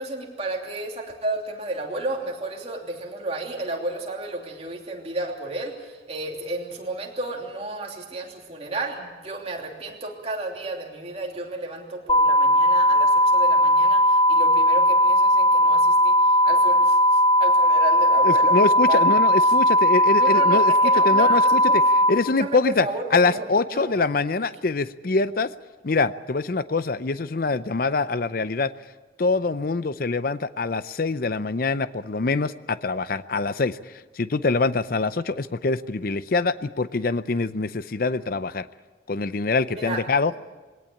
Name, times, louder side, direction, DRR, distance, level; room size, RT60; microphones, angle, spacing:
voice 1, 0.0-18.5 18.9-19.1 19.4-19.5 20.2-21.8 22.4-23.5 23.7-23.9 39.7-40.0, right 2 dB, 35° right, 0 dB, 3.0 m, -32 dB
sound 1, 12.1-22.1, equal, 30° left, 1.8 m, -18 dB
voice 2, 18.2-20.7 21.0-21.8 22.1-22.9 23.1-25.5 25.8-28.7 29.2-33.8 34.2-38.7 39.1-40.3, left 3 dB, 50° left, 14 dB, 0.6 m, -24 dB
21.5 x 18.0 x 8.6 m, 1.3 s
head